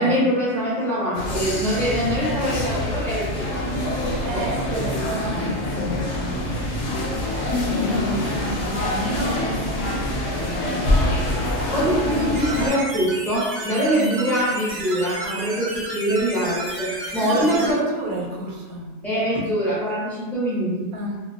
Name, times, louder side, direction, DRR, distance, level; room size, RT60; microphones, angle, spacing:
voice 1, 0.0-4.4 5.7-6.0 11.7-17.8 19.0-20.9, equal, ahead, -10 dB, 0.4 m, -24 dB
sound 1, 1.1-12.7, left 1 dB, 60° left, 0.7 m, -25 dB
voice 2, 4.2-5.8 6.2-6.4 7.9-10.8 17.2-18.9 20.9-21.2, right 2 dB, 85° right, -1 dB, 1.0 m, -32 dB
sound 2, 12.3-17.7, right 1 dB, 60° right, 0.6 m, -32 dB
2.2 x 2.2 x 2.5 m, 1.2 s
omnidirectional pair, 1.4 m